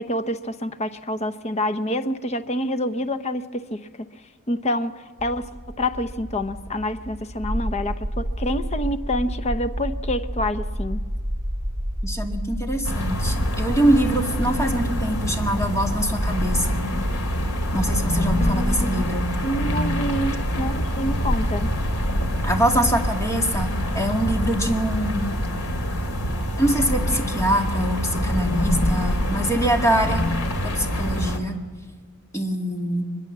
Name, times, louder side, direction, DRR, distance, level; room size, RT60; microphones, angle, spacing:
voice 1, 0.0-3.9 4.5-4.9 5.2-11.0 18.4-19.0 19.4-21.7 29.6-29.7 30.0-30.1, left 1 dB, 30° left, 11 dB, 0.8 m, -27 dB
sound 1, 5.2-22.4, equal, 40° right, 2.7 m, -31 dB
voice 2, 12.0-16.8 17.7-19.3 22.4-25.3 26.6-30.2 30.6-31.6 32.3-33.1, right 1 dB, 15° left, 3 dB, 2.2 m, -24 dB
sound 2, 12.8-31.4, equal, 85° left, 2.8 m, -25 dB
23.5 x 21.5 x 7.4 m, 1.4 s
head